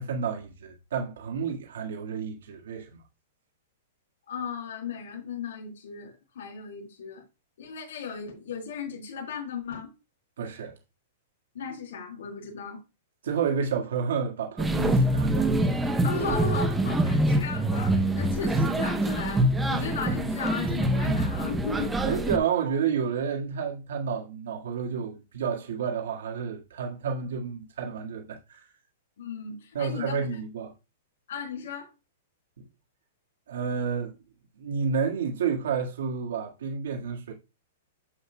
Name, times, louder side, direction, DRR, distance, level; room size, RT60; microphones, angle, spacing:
voice 1, 0.0-3.0 10.4-10.7 13.2-15.6 22.0-28.7 29.7-30.7 33.5-34.1 34.6-37.3, right 6 dB, 80° right, 1.7 m, -30 dB
voice 2, 4.3-7.2 7.6-9.9 11.5-12.8 16.0-22.2 29.2-30.4 31.3-31.9, left 5 dB, 80° left, 4.2 m, -36 dB
sound 1, 14.6-22.4, right 1 dB, 5° right, 0.7 m, -25 dB
9.6 x 7.8 x 2.2 m
supercardioid pair, 170°, 0 cm